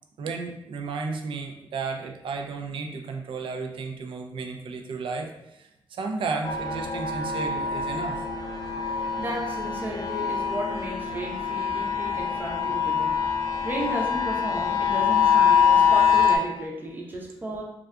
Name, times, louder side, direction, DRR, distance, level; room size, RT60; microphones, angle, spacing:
voice 1, 0.2-8.2, right 4 dB, 65° right, 3 dB, 0.3 m, -33 dB
sound 1, 6.4-16.4, left 7 dB, 40° left, 0.4 m, -24 dB
voice 2, 8.6-17.6, right 1 dB, 20° right, -1 dB, 0.6 m, -34 dB
2.6 x 2.3 x 2.2 m, 0.88 s
cardioid pair, 85°, 9 cm